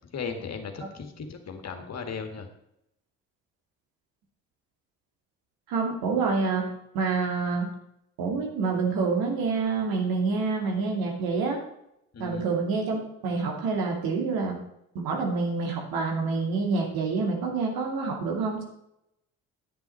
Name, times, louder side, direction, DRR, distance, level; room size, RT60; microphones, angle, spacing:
voice 1, 0.1-2.5 12.1-12.5, left 5 dB, 40° left, 6 dB, 1.9 m, -36 dB
voice 2, 5.7-7.7 8.2-11.6 12.2-14.6 14.9-18.6, right 4 dB, 65° right, 1 dB, 2.7 m, -27 dB
10.5 x 9.5 x 4.5 m, 0.80 s
hypercardioid pair, 50°, 39 cm